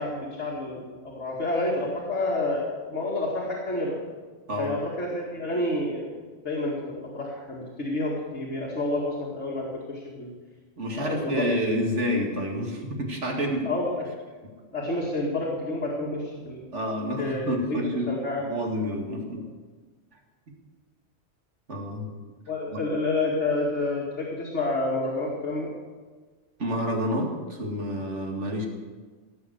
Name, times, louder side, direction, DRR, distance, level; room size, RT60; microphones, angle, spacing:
voice 1, 0.0-4.0 4.6-6.2 6.4-10.3 11.0-11.5 13.6-14.0 14.7-16.6 17.2-18.4 19.1-19.2 22.5-25.7, left 2 dB, 85° left, -5 dB, 2.7 m, -29 dB
voice 2, 10.8-13.7 16.7-18.1 18.5-19.5 21.7-22.1 22.7-22.8 26.6-28.7, equal, 90° right, 1 dB, 2.5 m, -28 dB
18.0 x 7.2 x 8.0 m, 1.4 s
omnidirectional pair, 1.2 m